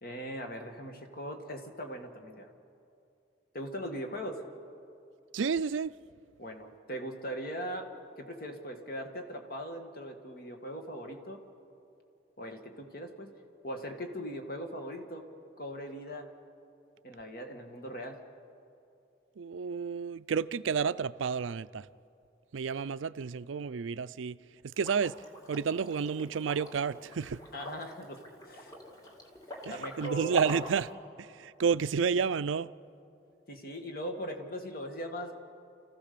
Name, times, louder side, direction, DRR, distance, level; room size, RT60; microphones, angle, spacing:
voice 1, 0.0-2.5 3.5-4.4 6.4-7.9 8.2-11.4 12.4-13.3 13.6-15.3 15.6-16.3 17.0-18.2 27.5-28.7 29.7-30.3 33.5-35.3, equal, 50° left, 1.7 m, -40 dB
voice 2, 5.3-6.0 19.4-21.9 22.5-24.4 24.8-25.2 25.5-27.4 29.7-30.9 31.2-32.7, right 6 dB, 85° right, 0.4 m, -30 dB
Liquid, 24.7-30.9, equal, 20° left, 1.9 m, -44 dB
28.5 x 15.0 x 6.8 m
head